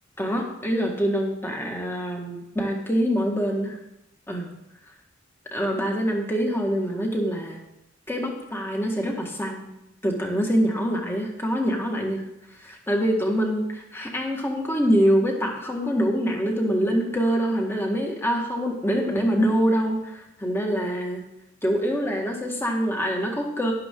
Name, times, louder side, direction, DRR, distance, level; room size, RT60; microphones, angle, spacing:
voice 1, 0.2-3.8 4.3-4.5 5.5-7.6 8.1-9.7 10.0-12.2 12.6-21.2 21.6-23.7, equal, 10° left, 1 dB, 1.9 m, -25 dB
12.5 x 11.0 x 3.8 m, 0.86 s
head